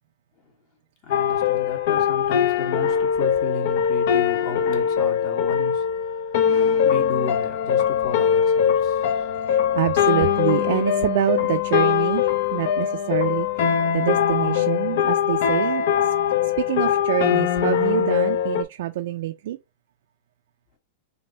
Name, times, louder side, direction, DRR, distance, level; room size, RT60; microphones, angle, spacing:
voice 1, 1.0-5.9 6.1-9.3, left 3 dB, 45° left, 1.5 m, -34 dB
sound 1, 1.1-18.6, left 8 dB, 65° left, 0.6 m, -21 dB
voice 2, 9.5-12.2 12.5-13.5 13.9-15.8 16.6-19.6, right 14 dB, 70° right, 0.3 m, -26 dB
3.3 x 2.6 x 4.1 m
supercardioid pair, 135°, 0 cm